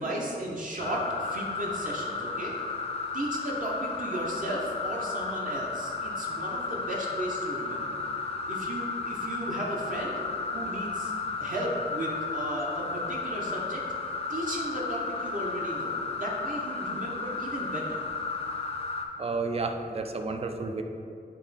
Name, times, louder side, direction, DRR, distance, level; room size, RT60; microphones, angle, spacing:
voice 1, 0.0-2.6 3.1-8.1 8.5-10.2 10.5-11.1 11.4-13.8 14.3-18.0, right 1 dB, 50° right, -4 dB, 0.8 m, -35 dB
sound 1, 0.8-19.1, left 4 dB, 35° left, 0.5 m, -33 dB
voice 2, 19.2-20.8, right 3 dB, 35° right, 5 dB, 0.4 m, -31 dB
8.4 x 3.0 x 4.1 m, 2.5 s
wide cardioid pair, 145°, 17 cm